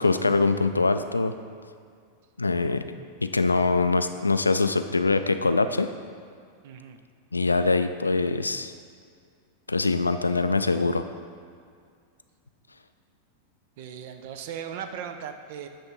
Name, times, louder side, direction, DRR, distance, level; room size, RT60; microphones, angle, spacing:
voice 1, 0.0-1.3 2.4-2.8 3.2-5.9 7.3-8.7 9.7-11.0, left 3 dB, 80° left, 10 dB, 0.3 m, -23 dB
voice 2, 6.6-7.0 13.8-15.7, right 8 dB, 50° right, 7 dB, 0.5 m, -37 dB
9.0 x 3.5 x 5.3 m, 2.2 s
figure-of-eight pair, 90°, 0 cm